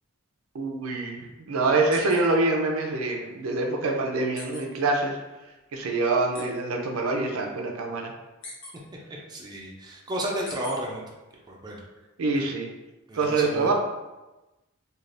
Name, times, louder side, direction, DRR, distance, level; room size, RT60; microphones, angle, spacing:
voice 1, 0.5-5.2 5.7-8.1 12.2-12.7 13.1-13.7, right 3 dB, 85° right, 2 dB, 0.5 m, -25 dB
sound 1, 1.9-2.2 2.6-2.7 4.4-4.6 6.3-6.4 8.4-8.7 10.5-10.7, left 2 dB, 60° left, 0.8 m, -40 dB
voice 2, 9.1-11.0 11.5-11.8 12.4-12.5 13.1-13.7, right 1 dB, 20° right, -2 dB, 0.4 m, -33 dB
3.2 x 2.3 x 2.5 m, 1.1 s
head